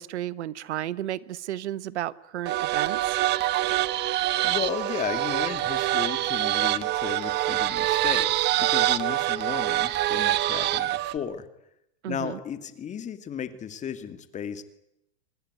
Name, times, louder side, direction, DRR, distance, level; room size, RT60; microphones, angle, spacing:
voice 1, 0.0-3.2 12.0-12.4, right 13 dB, 80° right, 18 dB, 1.3 m, -33 dB
sound 1, 2.5-11.2, right 15 dB, 30° right, 1.3 m, -25 dB
voice 2, 4.4-11.5 12.1-14.6, left 8 dB, 20° left, 11 dB, 2.3 m, -34 dB
25.5 x 21.0 x 9.6 m, 0.82 s
supercardioid pair, 145°, 33 cm